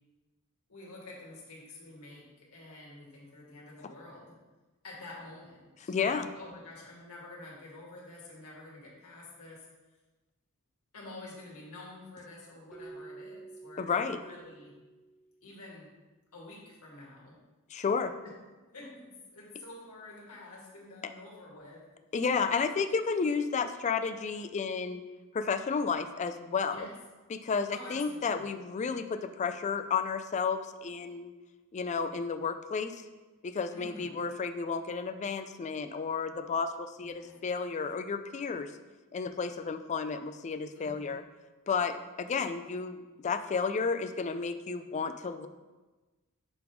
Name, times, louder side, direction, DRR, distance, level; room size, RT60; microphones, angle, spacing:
voice 1, 0.7-4.4 4.8-9.7 10.9-14.7 15.4-15.9 16.3-17.3 18.7-21.9 26.7-26.9 27.7-28.5 33.7-34.2 37.0-37.4 40.7-41.2, left 2 dB, 80° left, -5 dB, 1.8 m, -48 dB
voice 2, 5.9-6.3 13.8-14.2 17.7-18.1 22.1-25.0 25.3-26.9 27.3-31.3 31.7-33.0 33.4-38.7 39.1-41.2 41.7-45.5, left 5 dB, 30° left, 9 dB, 0.4 m, -32 dB
Keyboard (musical), 12.7-15.5, right 3 dB, ahead, 0.7 m, -49 dB
7.0 x 3.5 x 4.6 m, 1.2 s
head